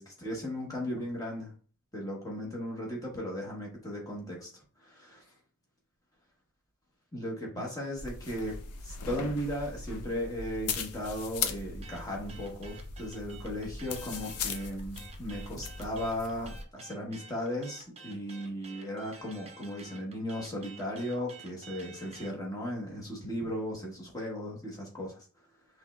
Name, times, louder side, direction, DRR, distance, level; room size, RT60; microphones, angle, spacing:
voice 1, 0.0-1.5 1.9-4.5 4.8-5.2 7.1-8.6 8.8-25.2, equal, 15° left, -2 dB, 1.2 m, -36 dB
sound 1, 8.0-16.6, left 5 dB, 85° left, 0.5 m, -39 dB
sound 2, 11.8-22.4, right 4 dB, 30° right, 0.7 m, -51 dB
5.5 x 3.1 x 2.3 m, 0.41 s
head